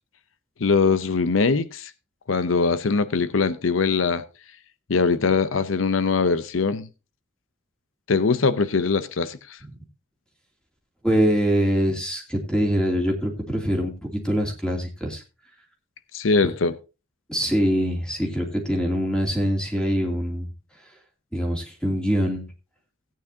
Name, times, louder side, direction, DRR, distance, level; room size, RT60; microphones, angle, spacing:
voice 1, 0.6-1.9 2.3-4.2 4.9-6.9 8.1-9.6 16.1-16.7, left 4 dB, 90° left, 0.7 m, -22 dB
voice 2, 11.0-15.2 17.3-20.5 21.3-22.4, equal, 5° left, 2.6 m, -24 dB
16.5 x 9.2 x 2.8 m
head